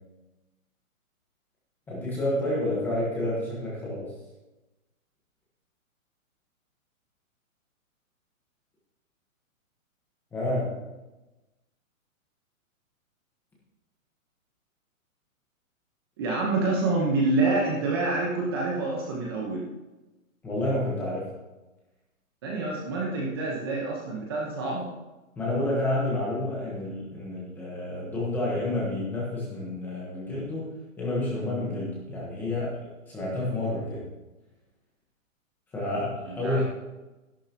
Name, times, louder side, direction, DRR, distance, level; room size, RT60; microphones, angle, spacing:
voice 1, 1.9-4.1 10.3-10.8 20.4-21.2 25.4-34.0 35.7-36.6, left 1 dB, 5° left, -6 dB, 1.2 m, -29 dB
voice 2, 16.2-19.7 22.4-24.9 36.3-36.6, right 3 dB, 15° right, -2 dB, 1.0 m, -27 dB
12.5 x 11.5 x 2.9 m, 1.1 s
hypercardioid pair, 175°, 42 cm